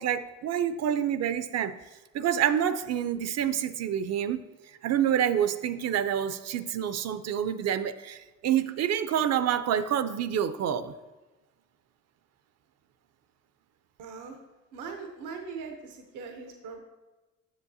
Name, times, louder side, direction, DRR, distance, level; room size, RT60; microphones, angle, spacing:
voice 1, 0.0-1.8 2.1-4.4 4.8-10.9, right 9 dB, 60° right, 13 dB, 0.5 m, -27 dB
voice 2, 14.0-14.4 14.7-16.8, right 5 dB, 85° right, 4 dB, 0.8 m, -40 dB
7.3 x 7.0 x 2.7 m, 1.1 s
cardioid pair, 90°, 30 cm